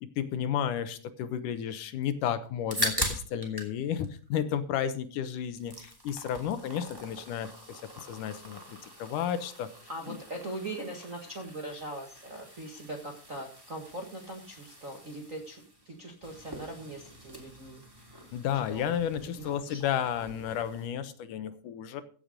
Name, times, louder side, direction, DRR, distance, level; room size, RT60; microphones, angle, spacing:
voice 1, 0.0-9.7 10.1-10.2 18.3-22.0, left 9 dB, 75° left, 11 dB, 2.4 m, -32 dB
sound 1, 2.5-3.7 4.0-5.1 5.4-20.9, equal, 5° right, 2.4 m, -41 dB
voice 2, 9.9-17.8 18.7-19.0 19.4-19.8, right 1 dB, 40° right, 1 dB, 1.2 m, -41 dB
15.5 x 7.9 x 5.1 m, 0.42 s
omnidirectional pair, 3.9 m